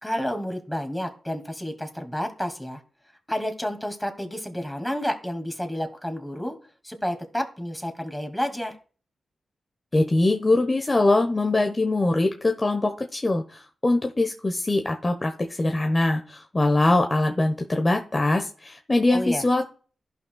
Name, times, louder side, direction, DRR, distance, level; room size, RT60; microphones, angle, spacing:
voice 1, 0.0-2.8 3.3-6.6 6.8-8.8 19.1-19.4, equal, 10° left, 5 dB, 2.4 m, -30 dB
voice 2, 9.9-19.6, left 2 dB, 30° left, 4 dB, 1.2 m, -22 dB
11.5 x 5.8 x 2.4 m, 0.39 s
cardioid pair, 45°, 0 cm